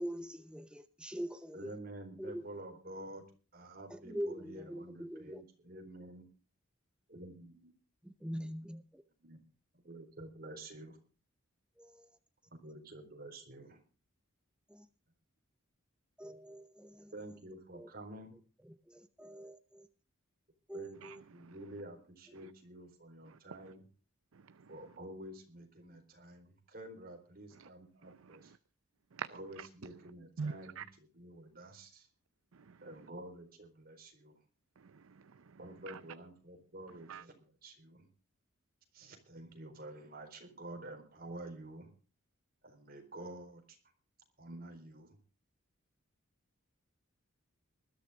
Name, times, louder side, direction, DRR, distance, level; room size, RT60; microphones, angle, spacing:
voice 1, 0.0-1.8 2.2-2.5 3.9-5.4 8.0-9.0 11.8-12.2 14.7-14.9 16.2-17.1 17.7-17.9 18.6-19.9 20.7-21.2 22.4-22.5, equal, 5° right, 0.7 m, -44 dB
voice 2, 1.5-3.2 3.5-6.3 7.1-7.7 9.2-9.4 9.8-11.0 12.5-13.8 17.1-18.4 20.7-21.0 21.3-23.8 24.7-28.5 29.3-30.8 31.1-32.1 32.8-34.3 35.6-37.3 37.6-38.1 38.9-41.9 42.6-43.8 44.4-45.2, right 1 dB, 45° right, 4.2 m, -49 dB
voice 3, 21.0-21.6 22.3-22.5 23.3-23.7 24.3-24.9 27.5-27.7 28.0-28.6 29.1-29.7 30.4-30.9 32.5-33.0 34.8-36.0 37.1-37.3, right 5 dB, 80° right, 0.6 m, -47 dB
20.0 x 12.5 x 3.7 m
head